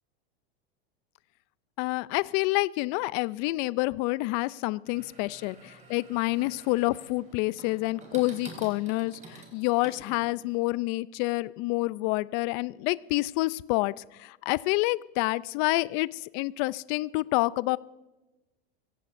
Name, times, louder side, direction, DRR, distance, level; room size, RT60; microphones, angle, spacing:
voice 1, 1.8-17.8, left 21 dB, 50° left, 19 dB, 0.4 m, -28 dB
sound 1, 4.9-10.6, right 3 dB, 25° right, 4.5 m, -49 dB
27.0 x 16.5 x 2.6 m, 1.0 s
supercardioid pair, 115°, 31 cm